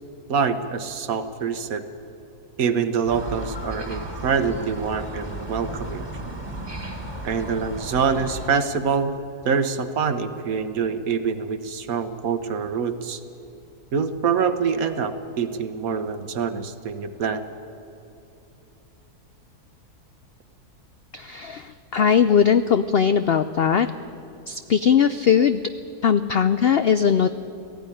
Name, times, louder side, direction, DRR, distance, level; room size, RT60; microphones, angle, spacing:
voice 1, 0.3-1.9 2.6-6.0 7.2-9.2 9.4-13.2 13.9-17.4, right 6 dB, 65° right, 10 dB, 1.4 m, -25 dB
sound 1, 3.1-8.5, right 1 dB, 15° right, 1.8 m, -34 dB
voice 2, 21.1-23.9 24.5-25.6 26.0-27.3, left 7 dB, 70° left, 11 dB, 0.5 m, -19 dB
17.5 x 15.0 x 10.0 m, 2.9 s
omnidirectional pair, 1.7 m